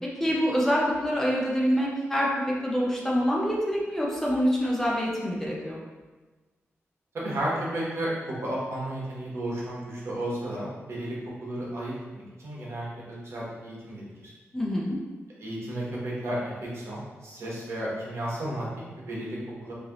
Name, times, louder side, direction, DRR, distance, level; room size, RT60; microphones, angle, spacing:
voice 1, 0.0-5.8 14.5-15.0, equal, 10° left, -4 dB, 0.6 m, -26 dB
voice 2, 7.1-11.2 11.4-14.3 15.4-19.7, right 1 dB, 70° right, -5 dB, 1.1 m, -33 dB
3.2 x 2.7 x 3.8 m, 1.3 s
wide cardioid pair, 100°, 5 cm